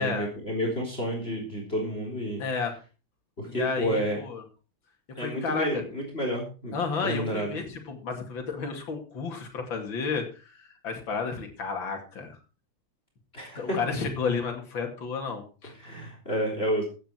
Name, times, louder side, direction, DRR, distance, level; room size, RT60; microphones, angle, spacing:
voice 1, 0.0-2.4 3.4-4.2 5.1-7.5 13.3-13.8 15.6-16.8, equal, 30° left, 1 dB, 3.9 m, -30 dB
voice 2, 2.4-2.7 3.5-4.4 5.2-5.8 6.7-10.2 10.6-12.4 13.4-15.7, left 5 dB, 65° left, 3 dB, 3.2 m, -32 dB
15.5 x 9.2 x 4.6 m, 0.34 s
omnidirectional pair, 2.3 m